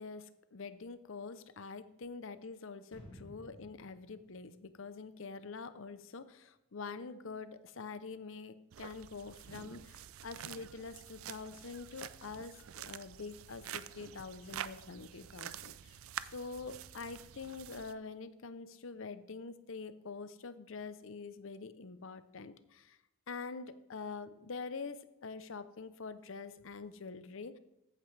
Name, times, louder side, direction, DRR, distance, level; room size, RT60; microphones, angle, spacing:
voice 1, 0.0-16.0 16.3-23.0 23.3-27.6, left 4 dB, 65° left, 13 dB, 0.6 m, -45 dB
sound 1, 2.9-5.7 6.0-6.1, equal, 25° left, 4.7 m, -56 dB
sound 2, 8.7-17.9, right 10 dB, 75° right, 0.4 m, -47 dB
14.0 x 8.8 x 3.3 m, 0.91 s
head